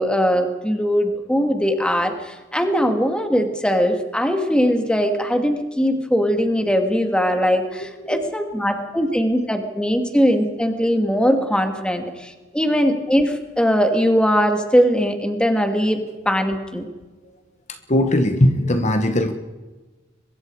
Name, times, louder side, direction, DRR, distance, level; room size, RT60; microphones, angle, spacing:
voice 1, 0.0-16.0 16.3-16.9, equal, 5° left, 5 dB, 2.3 m, -20 dB
voice 2, 17.9-19.3, left 1 dB, 35° left, 6 dB, 1.4 m, -19 dB
23.5 x 22.5 x 4.9 m, 1.2 s
head